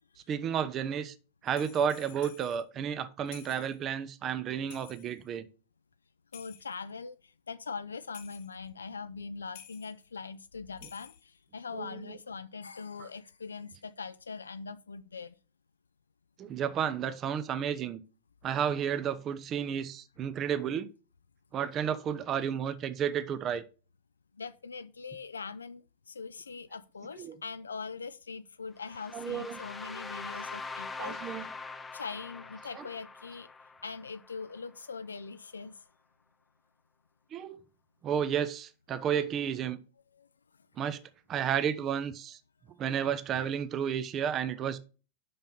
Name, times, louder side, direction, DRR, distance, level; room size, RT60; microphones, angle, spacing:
voice 1, 0.3-1.1 1.4-5.4 10.8-10.9 11.7-12.2 13.0-13.1 16.4-18.0 18.4-20.9 21.5-23.6 27.1-27.4 29.1-29.6 31.0-31.5 32.7-32.9 37.3-37.6 38.0-39.8 40.8-41.0 41.3-42.4 42.8-44.8, right 8 dB, 30° right, 0.7 m, -32 dB
sound 1, 1.5-2.6 3.3-3.8 4.7-5.3 6.3-6.9 8.1-8.6 9.5-10.0 10.7-11.4, left 11 dB, 55° left, 1.0 m, -52 dB
voice 2, 6.3-15.3 24.4-31.3 31.9-33.5 33.8-35.8 40.2-40.3, left 5 dB, 75° left, 0.3 m, -42 dB
sound 2, 28.8-34.8, left 4 dB, 15° left, 0.6 m, -43 dB
5.8 x 5.3 x 5.4 m
figure-of-eight pair, 90°, 0 cm